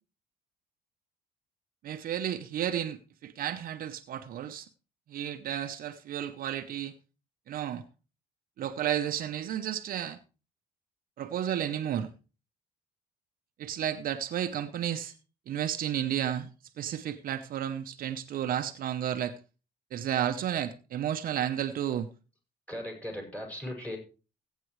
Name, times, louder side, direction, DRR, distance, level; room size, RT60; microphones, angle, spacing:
voice 1, 1.8-4.7 5.1-6.9 7.5-7.8 8.6-10.2 11.2-12.1 13.6-15.1 15.5-16.5 16.8-19.3 19.9-22.1, right 10 dB, 55° right, 0.8 m, -32 dB
voice 2, 22.7-24.0, left 1 dB, 10° left, 5.7 m, -38 dB
16.5 x 9.1 x 3.2 m
cardioid pair, 110°, 17 cm